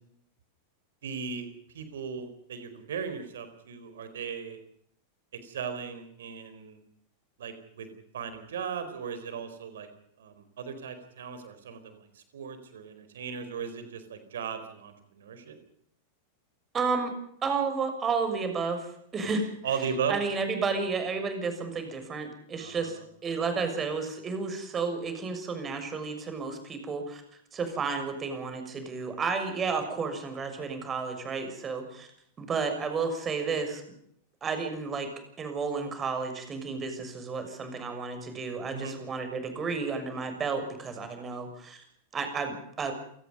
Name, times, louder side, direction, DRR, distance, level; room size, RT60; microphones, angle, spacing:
voice 1, 1.0-1.5 1.7-4.6 5.4-6.8 7.4-7.9 8.1-9.9 10.2-12.0 12.3-15.6 19.6-20.1 22.6-22.9 38.7-39.0, right 6 dB, 65° right, 10 dB, 4.5 m, -37 dB
voice 2, 16.7-17.1 17.4-27.2 27.5-32.1 32.4-33.8 34.4-35.1 35.4-41.8 42.1-42.9, right 4 dB, 25° right, 7 dB, 6.6 m, -32 dB
28.5 x 18.5 x 5.5 m, 0.69 s
figure-of-eight pair, 90°, 0 cm